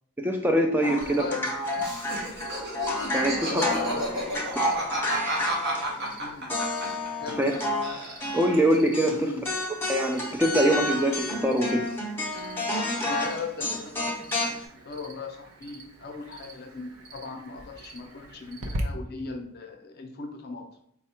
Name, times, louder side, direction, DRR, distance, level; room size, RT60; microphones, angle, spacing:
voice 1, 0.2-1.2 3.1-3.6 7.4-7.5 8.3-9.3 9.9-11.8, right 1 dB, 10° right, 2 dB, 0.3 m, -23 dB
sound 1, 0.8-6.1 6.5-9.1 9.4-14.6, left 1 dB, 10° left, 0.7 m, -30 dB
voice 2, 1.0-1.5 3.4-4.5 6.2-6.5 7.2-7.7 9.1-9.4 13.1-20.7, left 4 dB, 45° left, 5 dB, 0.6 m, -38 dB
Cricket, 1.0-18.8, right 1 dB, 75° right, 0.7 m, -46 dB
Laughter, 1.8-7.6 7.8-8.6, right 1 dB, 50° right, 1.1 m, -32 dB
4.2 x 2.3 x 4.2 m, 0.71 s
head